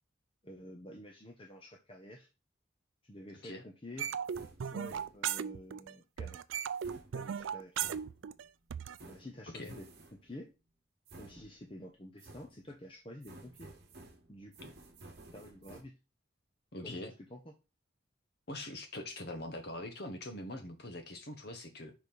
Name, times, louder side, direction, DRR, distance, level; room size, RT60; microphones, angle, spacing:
voice 1, 0.4-2.3 3.0-4.1 4.6-6.4 7.1-7.8 9.1-10.5 11.2-13.7 14.3-14.5 15.3-15.9 16.8-17.4, left 1 dB, 25° left, 2 dB, 0.8 m, -50 dB
sound 1, 4.0-5.5 6.6-8.5 9.0-10.4 11.1-11.9 12.2-12.8 13.2-15.8, right 2 dB, 55° right, 1.2 m, -54 dB
sound 2, 4.0-5.9 6.2-9.0, right 8 dB, 80° right, 0.4 m, -37 dB
voice 2, 9.5-9.8 16.7-17.1 18.5-21.9, left 1 dB, 55° left, 6 dB, 1.2 m, -43 dB
4.9 x 4.4 x 5.3 m, 0.29 s
head